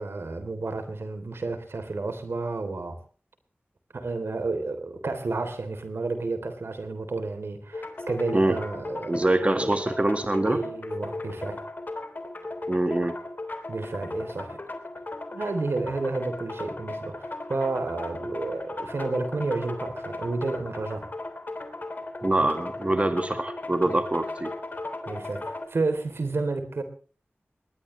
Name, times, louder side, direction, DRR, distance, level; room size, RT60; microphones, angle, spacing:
voice 1, 0.0-3.0 3.9-9.2 10.4-11.7 13.7-14.6 15.3-21.1 25.1-26.8, right 3 dB, 80° right, 8 dB, 3.4 m, -31 dB
sound 1, 7.7-25.7, left 2 dB, 50° left, 3.2 m, -36 dB
voice 2, 9.1-10.6 12.7-13.2 22.2-24.5, right 2 dB, 30° right, 8 dB, 1.8 m, -24 dB
20.0 x 20.0 x 3.3 m, 0.38 s
wide cardioid pair, 75°, 4 cm